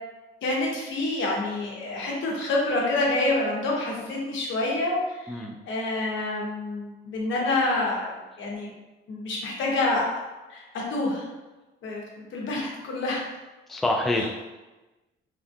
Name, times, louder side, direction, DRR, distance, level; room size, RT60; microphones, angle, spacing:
voice 1, 0.4-8.7 9.1-10.2 10.5-11.3 11.8-12.0 12.3-13.2 14.1-14.3, left 2 dB, 75° left, -3 dB, 0.9 m, -27 dB
voice 2, 13.7-14.3, left 2 dB, ahead, 1 dB, 0.3 m, -26 dB
3.5 x 2.3 x 2.6 m, 1.1 s
cardioid pair, 90°, 20 cm